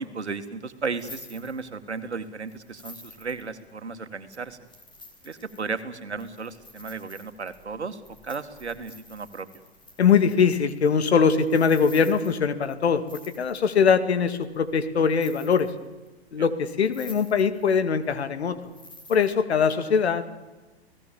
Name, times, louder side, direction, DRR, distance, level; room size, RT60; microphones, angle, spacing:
voice 1, 0.0-4.6 5.2-9.5 16.4-16.5, right 4 dB, 90° right, 9 dB, 2.1 m, -34 dB
sound 1, 0.7-2.0 2.5-3.8 4.3-13.9 14.4-14.8 15.1-16.1 16.4-16.5 16.8-17.7 18.0-19.3, left 2 dB, 15° left, 4.3 m, -49 dB
voice 2, 10.0-13.0 13.4-15.7 16.3-18.6 19.1-20.2, left 6 dB, 75° left, 11 dB, 2.4 m, -22 dB
29.5 x 18.5 x 7.3 m, 1.2 s
hypercardioid pair, 110°, 33 cm